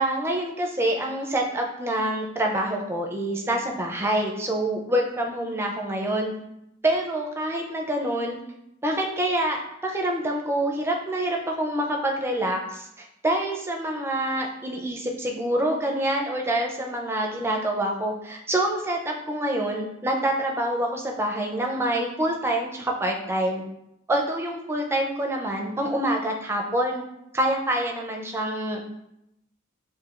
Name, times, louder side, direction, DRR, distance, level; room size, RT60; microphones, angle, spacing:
voice 1, 0.0-6.3 6.8-8.4 8.8-23.6 24.1-27.0 27.3-28.8, right 1 dB, 10° right, 1 dB, 0.4 m, -26 dB
7.5 x 2.6 x 2.4 m, 0.83 s
head